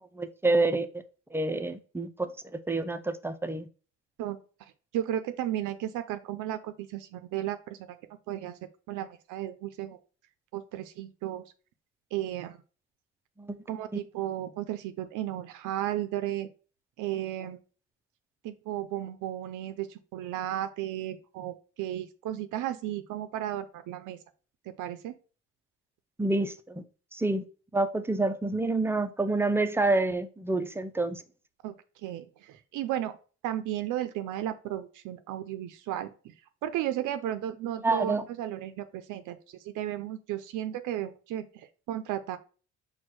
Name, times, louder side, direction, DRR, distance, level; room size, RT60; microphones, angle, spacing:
voice 1, 0.1-0.9 1.3-2.3 2.7-3.7 13.4-13.6 13.9-14.0 26.2-26.8 27.1-27.5 27.7-31.2 37.7-38.2, right 2 dB, 10° right, 0.4 m, -28 dB
voice 2, 4.9-7.8 8.3-8.5 8.9-10.0 10.5-11.4 12.1-12.6 13.7-16.5 17.0-17.6 18.4-19.9 20.1-24.2 24.8-25.1 31.6-31.7 32.0-33.1 33.4-36.1 36.6-41.5 41.9-42.4, right 12 dB, 90° right, 0.5 m, -34 dB
4.4 x 2.2 x 4.6 m
cardioid pair, 90°, 30 cm